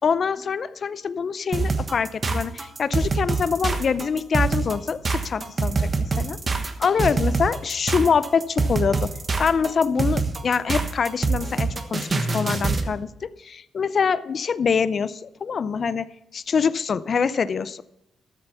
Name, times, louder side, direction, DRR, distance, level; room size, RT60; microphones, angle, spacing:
voice 1, 0.0-5.9 6.2-6.4 6.8-9.1 9.4-16.1 16.3-17.8, left 6 dB, 45° left, 15 dB, 0.5 m, -24 dB
sound 1, 1.5-12.9, right 4 dB, 35° right, 1.2 m, -25 dB
13.0 x 7.0 x 6.9 m, 0.87 s
cardioid pair, 105°, 0 cm